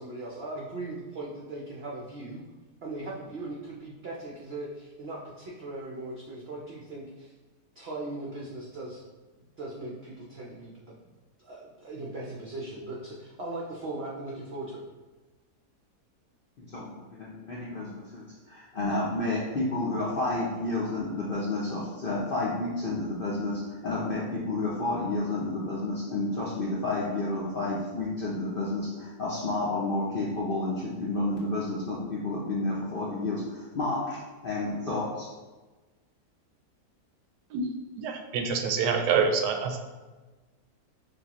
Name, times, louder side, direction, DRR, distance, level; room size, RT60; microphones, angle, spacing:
voice 1, 0.0-2.4 2.8-7.3 7.8-9.0 9.6-10.9 11.4-14.8, right 2 dB, 65° right, -4 dB, 0.6 m, -39 dB
voice 2, 16.6-35.3, left 2 dB, 80° left, -6 dB, 0.4 m, -30 dB
voice 3, 38.0-39.8, right 5 dB, 85° right, 4 dB, 1.2 m, -26 dB
6.5 x 2.3 x 2.9 m, 1.2 s
omnidirectional pair, 1.8 m